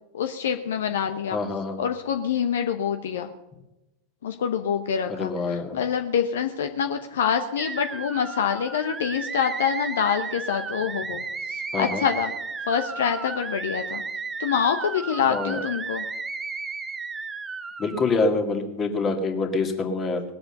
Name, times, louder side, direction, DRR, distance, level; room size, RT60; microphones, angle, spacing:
voice 1, 0.1-1.4 1.8-3.3 4.2-12.3 12.7-14.0 14.4-16.0, left 7 dB, 60° left, 6 dB, 0.9 m, -26 dB
voice 2, 1.3-1.8 5.1-5.8 11.7-12.0 15.2-15.6 17.8-20.2, left 3 dB, 25° left, 4 dB, 2.2 m, -26 dB
sound 1, 7.6-18.3, right 4 dB, 15° right, 0.9 m, -34 dB
20.5 x 7.9 x 6.7 m, 0.99 s
figure-of-eight pair, 90°, 0 cm